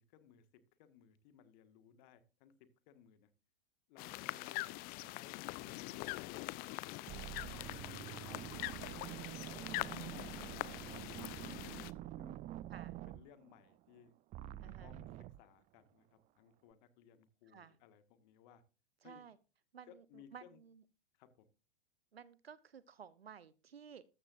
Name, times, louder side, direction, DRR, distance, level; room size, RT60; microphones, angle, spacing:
voice 1, 0.0-3.3 3.9-4.7 5.1-6.9 7.1-11.2 11.8-12.4 13.1-14.1 14.8-15.1 15.4-16.1 16.4-18.6 19.0-19.2 19.9-20.6 21.2-21.5, left 9 dB, 50° left, 11 dB, 1.9 m, -62 dB
sound 1, 4.0-11.9, left 21 dB, 30° left, 0.5 m, -44 dB
sound 2, 6.4-6.7 7.1-14.0 14.3-15.4, right 14 dB, 25° right, 0.5 m, -47 dB
voice 2, 14.6-14.9 17.5-17.8 19.0-19.4 19.7-20.8 22.1-24.0, right 7 dB, 80° right, 18 dB, 0.9 m, -55 dB
14.0 x 13.0 x 2.6 m, 0.31 s
figure-of-eight pair, 100°, 30 cm